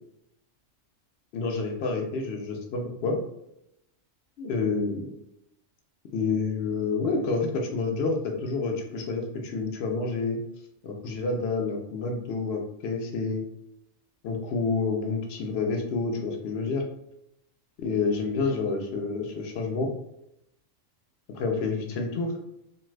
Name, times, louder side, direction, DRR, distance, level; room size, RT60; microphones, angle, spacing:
voice 1, 1.3-3.2 4.4-5.1 6.1-10.4 10.8-13.4 14.2-16.8 17.8-19.9 21.3-22.3, left 4 dB, 60° left, 2 dB, 0.7 m, -28 dB
2.5 x 2.3 x 3.2 m, 0.81 s
omnidirectional pair, 1.3 m